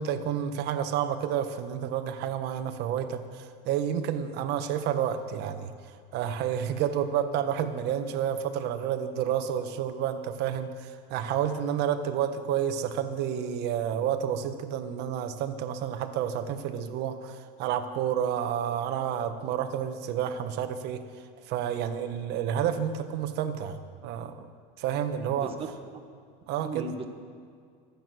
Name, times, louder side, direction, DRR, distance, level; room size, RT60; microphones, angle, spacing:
voice 1, 0.0-5.7 6.1-21.0 21.5-24.5 24.8-25.5 26.5-26.9, right 9 dB, 55° right, 8 dB, 1.3 m, -30 dB
voice 2, 25.4-26.0 26.6-27.1, right 3 dB, 30° right, 5 dB, 1.6 m, -37 dB
25.0 x 8.8 x 6.3 m, 2.2 s
cardioid pair, 140°, 20 cm